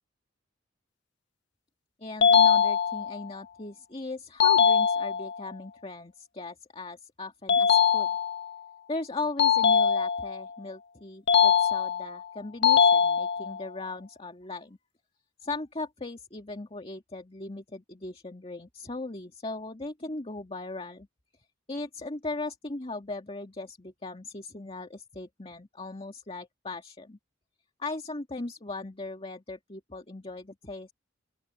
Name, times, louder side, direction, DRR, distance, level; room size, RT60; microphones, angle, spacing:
voice 1, 2.0-8.1 8.9-14.8 15.4-21.1 21.7-27.2 27.8-30.9, left 2 dB, 30° left, 2.0 m, -38 dB
sound 1, 2.2-3.2 4.4-5.4 7.5-8.5 9.4-10.5 11.3-12.2 12.6-13.6, left 7 dB, 65° left, 0.8 m, -22 dB
open air
head